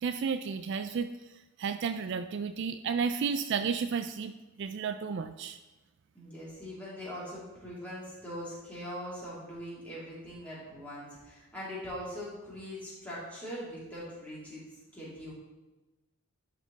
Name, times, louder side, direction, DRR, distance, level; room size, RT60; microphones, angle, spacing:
voice 1, 0.0-1.1 1.6-4.3 4.6-5.6, right 6 dB, 55° right, 10 dB, 0.3 m, -32 dB
voice 2, 6.1-14.6 14.9-15.3, equal, 5° left, -8 dB, 2.8 m, -41 dB
11.5 x 4.3 x 4.0 m, 1.1 s
head